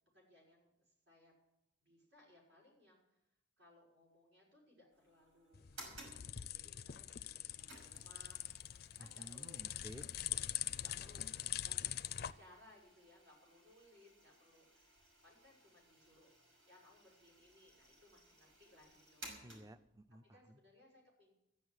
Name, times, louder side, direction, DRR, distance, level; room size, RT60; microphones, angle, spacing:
voice 1, 0.1-1.3 1.8-3.0 3.6-8.4 9.0-9.6 10.6-16.3 16.6-19.6 20.2-21.3, left 1 dB, 70° right, -3 dB, 5.8 m, -65 dB
sound 1, 4.9-20.0, right 1 dB, 90° right, 5.9 m, -60 dB
sound 2, 5.5-12.3, left 12 dB, 50° left, 0.4 m, -43 dB
voice 2, 9.0-10.0 19.4-20.6, equal, 15° right, 12 dB, 0.5 m, -54 dB
13.5 x 10.5 x 7.9 m, 0.86 s
head